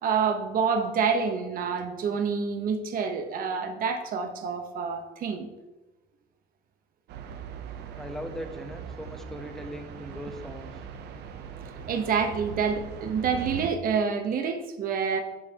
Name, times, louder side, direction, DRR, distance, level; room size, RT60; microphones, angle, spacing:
voice 1, 0.0-5.5 11.9-15.2, right 6 dB, 55° right, 6 dB, 1.0 m, -27 dB
sound 1, 7.1-13.7, right 7 dB, 80° right, 0.7 m, -40 dB
voice 2, 8.0-10.8, equal, ahead, 4 dB, 0.9 m, -39 dB
8.3 x 7.1 x 2.9 m, 1.1 s
cardioid pair, 110°, 17 cm